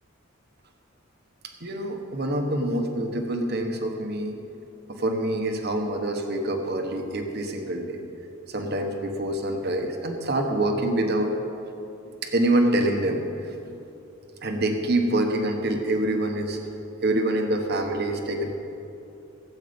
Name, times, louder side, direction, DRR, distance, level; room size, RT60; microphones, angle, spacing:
voice 1, 1.6-4.4 4.9-8.0 8.5-11.3 12.2-13.5 14.4-16.6 17.0-18.6, right 1 dB, 55° right, 4 dB, 1.2 m, -26 dB
16.5 x 8.3 x 5.2 m, 2.7 s
head